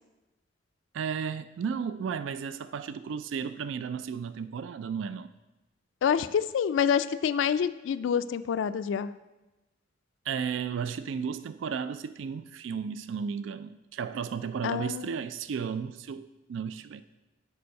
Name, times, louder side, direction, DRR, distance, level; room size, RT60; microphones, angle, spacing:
voice 1, 0.9-5.3 10.3-17.0, right 6 dB, 75° right, 13 dB, 0.3 m, -34 dB
voice 2, 6.0-9.1 14.6-15.2, left 7 dB, 75° left, 12 dB, 0.3 m, -27 dB
6.8 x 4.7 x 6.4 m, 1.0 s
head